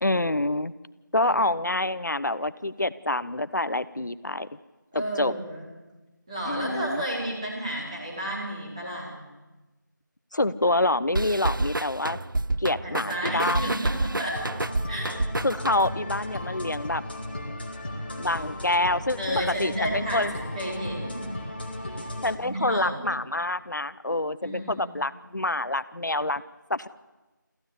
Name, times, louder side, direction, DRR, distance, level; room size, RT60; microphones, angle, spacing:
voice 1, 0.0-0.7 1.1-4.5 4.9-5.3 6.5-7.0 10.3-12.2 12.6-13.8 15.4-17.0 18.2-20.3 22.2-26.4 26.7-26.9, left 2 dB, 65° left, 16 dB, 1.0 m, -27 dB
voice 2, 4.9-5.7 6.3-9.1 12.8-14.5 14.9-15.1 19.2-21.3 22.4-23.1 24.4-24.9, equal, 20° right, -5 dB, 4.3 m, -32 dB
sound 1, 11.2-16.1, right 2 dB, 80° right, 0.7 m, -29 dB
Piano, 13.4-15.0 15.3-15.5 16.1-16.2 16.4-16.5 18.6-18.7, left 3 dB, 60° right, 5.6 m, -42 dB
sound 2, 14.3-22.3, left 1 dB, 30° left, 2.1 m, -35 dB
25.5 x 15.0 x 8.3 m, 1.1 s
figure-of-eight pair, 175°, 11 cm